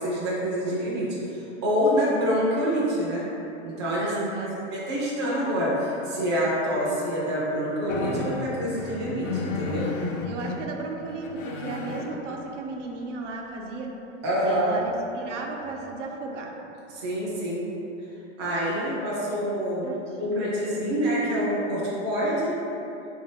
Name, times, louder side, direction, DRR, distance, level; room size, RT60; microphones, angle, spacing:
voice 1, 0.0-3.2 3.6-4.1 4.4-9.9 14.2-14.8 16.9-17.7 18.4-19.9 20.2-22.6, equal, 25° right, -7 dB, 0.4 m, -26 dB
voice 2, 4.0-4.5 10.2-13.9 14.4-16.5 19.8-20.8, right 3 dB, 80° right, 1 dB, 0.7 m, -35 dB
sound 1, 7.9-10.6 11.1-12.1 15.0-15.1 15.6-15.9, left 3 dB, 85° left, 0.6 m, -32 dB
3.6 x 2.6 x 3.7 m, 3.0 s
supercardioid pair, 175°, 36 cm